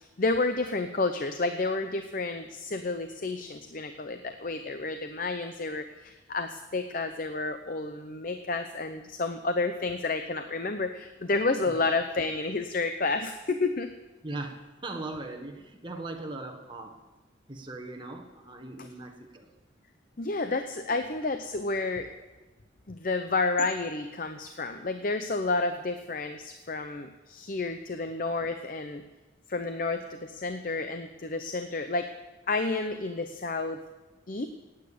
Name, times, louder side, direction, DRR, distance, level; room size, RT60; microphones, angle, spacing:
voice 1, 0.0-13.9 20.2-22.1 22.9-29.0 29.5-32.1 32.5-33.8 34.3-34.5, left 3 dB, 45° left, 8 dB, 0.7 m, -30 dB
voice 2, 14.2-17.0 17.5-19.5 20.9-21.0, right 2 dB, 25° right, 3 dB, 1.5 m, -39 dB
18.5 x 9.0 x 6.9 m, 1.1 s
head